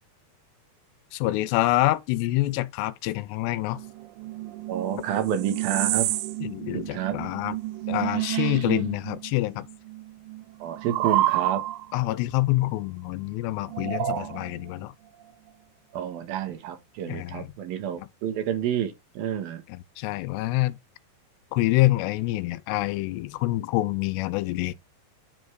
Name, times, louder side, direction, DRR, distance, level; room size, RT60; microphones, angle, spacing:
voice 1, 1.1-3.8 6.4-7.6 7.9-9.7 11.9-14.9 17.1-17.5 18.0-18.1 19.7-20.8 21.5-24.7, left 18 dB, 85° left, 2.7 m, -26 dB
sound 1, 3.8-9.3 9.6-12.0 13.7-14.7, right 15 dB, 85° right, 2.0 m, -29 dB
voice 2, 4.7-6.1 6.7-7.2 10.6-11.6 14.0-14.3 15.9-19.6, right 9 dB, 65° right, 3.0 m, -29 dB
10.0 x 4.3 x 4.7 m
omnidirectional pair, 4.8 m